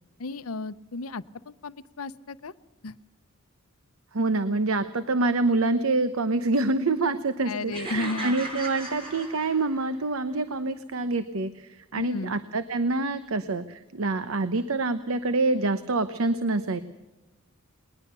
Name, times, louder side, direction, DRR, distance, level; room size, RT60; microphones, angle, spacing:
voice 1, 0.2-2.5 2.8-3.0 7.5-8.4 11.9-12.3, left 3 dB, 85° left, 14 dB, 0.8 m, -34 dB
voice 2, 4.1-16.8, right 3 dB, 70° right, 12 dB, 0.9 m, -26 dB
sound 1, 7.7-10.0, right 1 dB, 25° right, 7.0 m, -38 dB
20.5 x 20.0 x 6.8 m, 1.1 s
head